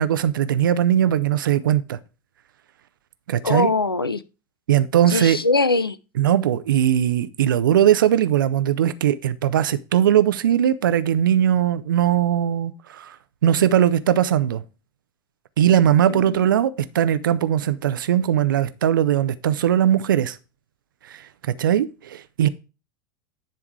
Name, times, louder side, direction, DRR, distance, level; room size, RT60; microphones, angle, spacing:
voice 1, 0.0-2.0 3.3-3.7 4.7-5.4 6.2-13.2 13.4-14.6 15.6-20.4 21.1-21.2 21.6-22.5, right 10 dB, 65° right, 0.6 m, -19 dB
voice 2, 3.4-4.2 5.1-6.0 16.1-16.4, left 3 dB, 85° left, 0.5 m, -22 dB
10.0 x 3.5 x 4.6 m
figure-of-eight pair, 80°, 12 cm